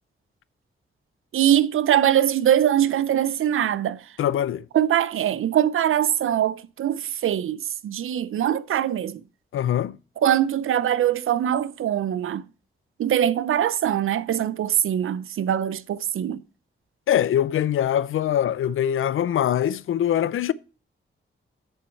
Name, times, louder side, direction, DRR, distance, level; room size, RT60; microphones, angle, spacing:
voice 1, 1.3-4.0 4.7-9.2 10.2-12.4 13.0-16.4, right 10 dB, 80° right, 0.5 m, -22 dB
voice 2, 4.2-4.6 9.5-10.0 17.1-20.5, left 10 dB, 75° left, 0.4 m, -23 dB
8.0 x 7.0 x 4.5 m
wide cardioid pair, 160°, 21 cm